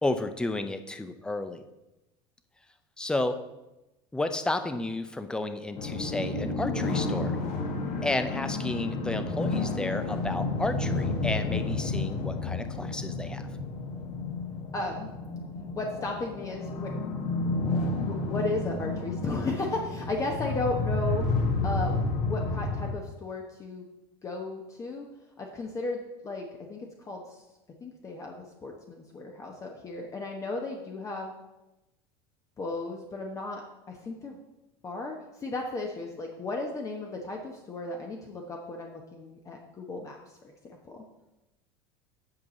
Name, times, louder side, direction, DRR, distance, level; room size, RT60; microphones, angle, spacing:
voice 1, 0.0-1.7 3.0-3.4 4.1-7.4 8.0-13.5, left 2 dB, 5° left, 9 dB, 0.6 m, -32 dB
sound 1, 5.8-22.9, left 3 dB, 55° left, 1.6 m, -31 dB
voice 2, 14.7-15.1 15.8-17.2 17.6-17.8 18.0-21.2 21.6-22.0 22.3-23.9 24.2-25.1 25.4-27.4 27.8-31.3 32.6-33.6 33.9-34.4 34.8-41.0, left 2 dB, 25° left, 1 dB, 1.0 m, -35 dB
7.8 x 4.7 x 7.0 m, 0.98 s
supercardioid pair, 130°, 13 cm